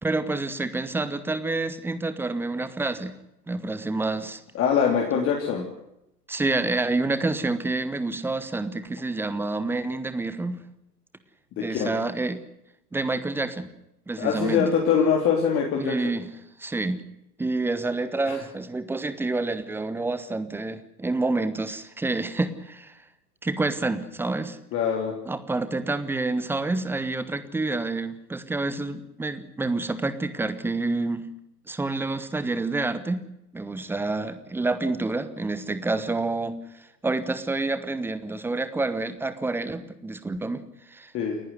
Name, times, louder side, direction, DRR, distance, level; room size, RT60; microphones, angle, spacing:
voice 1, 0.0-3.2 3.5-4.4 6.3-10.6 11.6-12.4 12.9-13.7 14.1-14.7 15.8-16.3 16.6-17.0 17.4-23.0 23.4-24.6 25.3-31.3 31.7-33.3 33.5-36.6 37.0-40.6 40.9-41.1, right 2 dB, 5° right, 13 dB, 1.2 m, -28 dB
voice 2, 4.5-5.7 11.6-11.9 14.2-15.9 18.3-18.4 24.7-25.1 41.1-41.4, left 7 dB, 25° left, 0 dB, 3.3 m, -23 dB
29.5 x 11.0 x 9.5 m, 0.84 s
figure-of-eight pair, 105°, 49 cm